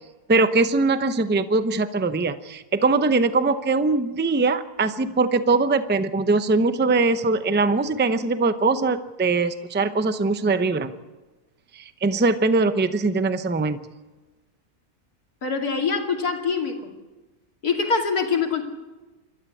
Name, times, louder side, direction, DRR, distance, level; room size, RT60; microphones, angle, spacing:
voice 1, 0.3-10.9 11.7-13.8, right 3 dB, 15° right, 11 dB, 0.4 m, -21 dB
voice 2, 15.4-16.7 17.6-18.6, left 5 dB, 75° left, 3 dB, 2.9 m, -24 dB
28.0 x 13.0 x 8.4 m, 1.2 s
omnidirectional pair, 1.6 m